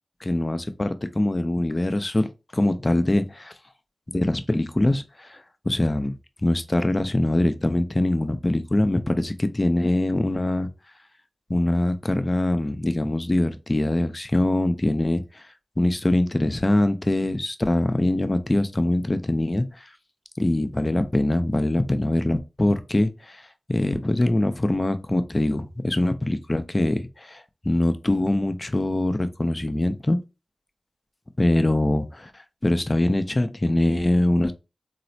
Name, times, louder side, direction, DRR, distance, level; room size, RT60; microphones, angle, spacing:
voice 1, 0.2-3.5 4.1-5.4 5.6-6.2 6.4-10.7 11.5-15.5 15.8-19.9 20.4-23.4 23.7-30.2 31.4-34.5, left 1 dB, 35° left, 0.5 m, -23 dB
4.1 x 2.0 x 2.6 m
cardioid pair, 40°, 0 cm